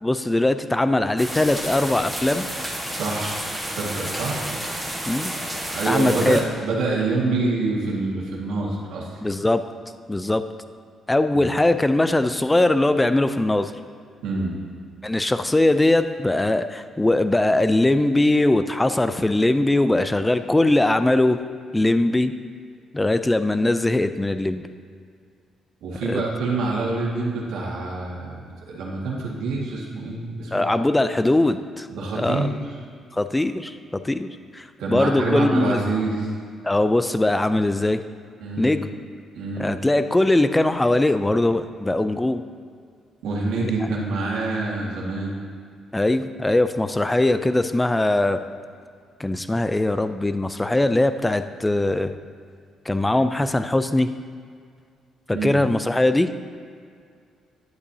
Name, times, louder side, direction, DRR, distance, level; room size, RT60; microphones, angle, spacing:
voice 1, 0.0-2.5 5.1-5.3 5.9-6.4 9.2-9.6 10.1-10.4 11.1-13.7 15.0-21.4 21.7-22.3 22.9-24.6 26.1-26.2 30.5-31.9 32.1-32.5 33.1-33.8 34.0-35.8 36.6-38.0 38.6-38.9 39.6-42.4 45.9-48.4 49.2-52.1 52.9-54.1 55.3-56.3, left 2 dB, 15° left, 10 dB, 0.4 m, -21 dB
sound 1, 1.2-6.4, right 1 dB, 5° right, 1.4 m, -31 dB
voice 2, 2.9-4.4 5.7-9.1 11.3-11.5 14.2-14.6 25.8-28.4 28.7-30.6 31.9-32.5 34.8-36.3 38.4-38.8 39.3-39.7 43.2-45.3 55.3-55.6, right 3 dB, 85° right, -4 dB, 1.8 m, -26 dB
11.0 x 8.4 x 2.8 m, 2.2 s
cardioid pair, 90°, 0 cm